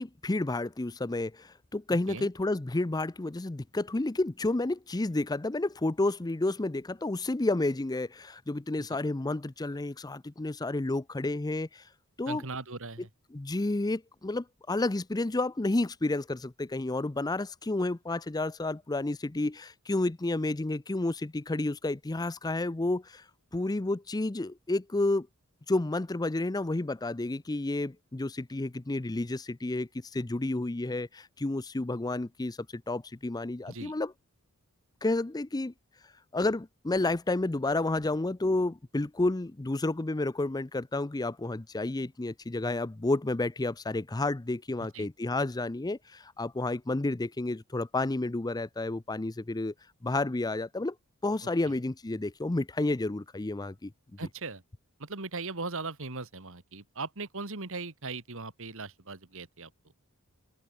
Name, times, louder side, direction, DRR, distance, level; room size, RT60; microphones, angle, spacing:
voice 1, 0.0-11.8 12.2-12.4 13.3-23.2 23.5-25.3 25.7-34.1 35.0-35.7 36.3-49.7 50.0-50.9 51.2-53.9, left 2 dB, 20° left, 0.5 m, -30 dB
voice 2, 12.3-13.1 33.7-33.9 44.9-45.1 51.6-51.8 54.2-54.6 55.0-59.7, right 3 dB, 65° right, 2.4 m, -39 dB
head